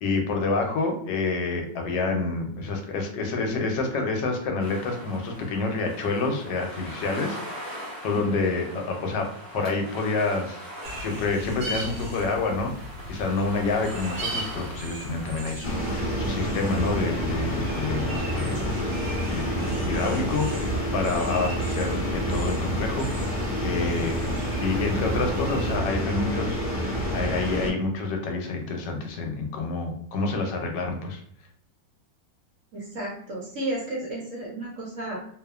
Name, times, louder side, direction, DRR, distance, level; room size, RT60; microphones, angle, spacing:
voice 1, 0.0-7.7 8.0-9.3 9.5-10.7 11.0-18.8 19.3-24.3 24.6-31.2, left 3 dB, 80° left, 3 dB, 1.2 m, -28 dB
sound 1, 4.6-15.5, equal, 15° right, 0.5 m, -41 dB
sound 2, 10.8-25.8, equal, 85° right, 1.3 m, -37 dB
sound 3, 15.6-27.7, equal, 45° left, 0.6 m, -28 dB
voice 2, 32.7-35.2, right 1 dB, 60° right, -5 dB, 0.9 m, -33 dB
3.0 x 2.1 x 2.2 m, 0.65 s
omnidirectional pair, 1.9 m